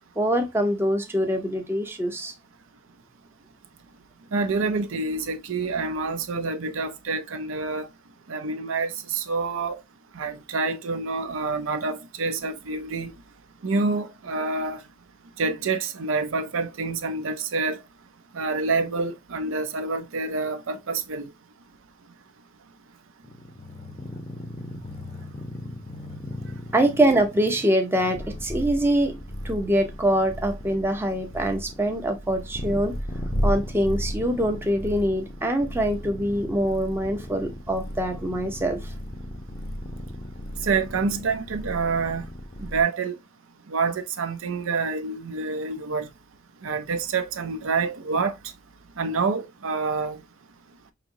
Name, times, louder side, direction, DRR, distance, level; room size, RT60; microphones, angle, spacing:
voice 1, 0.2-2.3 26.7-29.2 29.4-33.0 33.4-38.9, right 1 dB, 10° right, 0.6 m, -24 dB
voice 2, 4.3-7.9 8.3-9.8 10.1-13.1 13.6-14.8 15.4-17.8 18.3-21.3 40.6-42.3 42.6-43.2 43.7-46.1 46.6-48.3 49.0-50.2, right 4 dB, 70° right, 0.6 m, -27 dB
sound 1, 23.2-42.8, equal, 30° left, 0.6 m, -35 dB
4.9 x 2.9 x 2.6 m
head